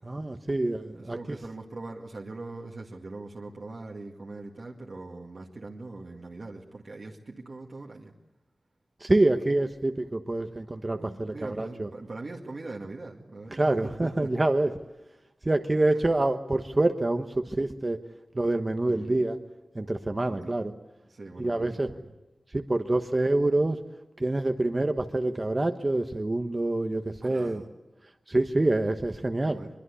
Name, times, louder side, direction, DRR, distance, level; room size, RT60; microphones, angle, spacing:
voice 1, 0.0-1.4 9.0-11.9 13.5-14.7 15.4-18.0 18.3-19.4 19.7-20.7 21.4-21.9 22.5-23.8 24.2-27.6 28.3-29.6, right 2 dB, 30° right, 6 dB, 1.1 m, -26 dB
voice 2, 0.9-8.1 10.9-14.3 15.9-16.0 18.9-19.2 20.2-20.6 21.1-22.1 27.2-27.7 29.4-29.7, right 2 dB, 55° right, -1 dB, 2.0 m, -41 dB
23.0 x 22.5 x 8.3 m, 1.0 s
wide cardioid pair, 75°, 0 cm